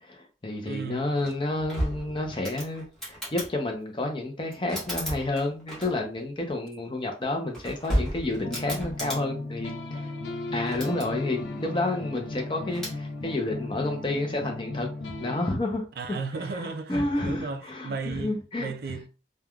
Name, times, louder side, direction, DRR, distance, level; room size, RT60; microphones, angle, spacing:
voice 1, 0.0-10.1 10.5-14.9 15.2-16.2 16.6-18.7, left 2 dB, 30° left, 0.6 m, -30 dB
voice 2, 0.6-1.1 16.0-19.1, right 4 dB, 55° right, 0.4 m, -35 dB
sound 1, 1.2-3.5 4.5-6.2 7.3-9.2 10.5-11.1 12.7-13.0, equal, 5° left, 1.1 m, -33 dB
sound 2, 8.3-15.5, left 2 dB, 85° left, 0.5 m, -36 dB
3.3 x 2.2 x 2.3 m
head